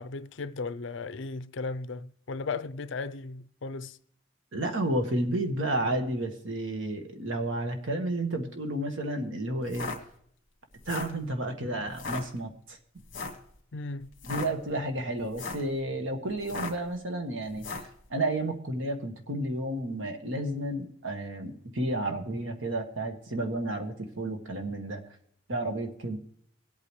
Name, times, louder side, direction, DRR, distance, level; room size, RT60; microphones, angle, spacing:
voice 1, 0.0-4.0 13.7-14.1, left 4 dB, 70° left, 0.5 m, -36 dB
voice 2, 4.5-9.9 10.9-12.8 14.3-25.0 25.5-26.2, right 1 dB, 75° right, 1.6 m, -31 dB
sound 1, 9.6-10.0 10.7-11.2 11.9-12.2 13.1-13.4 14.1-14.5 15.2-15.7 16.4-16.9 17.6-17.9, left 3 dB, 45° left, 1.8 m, -36 dB
22.5 x 8.6 x 3.2 m
head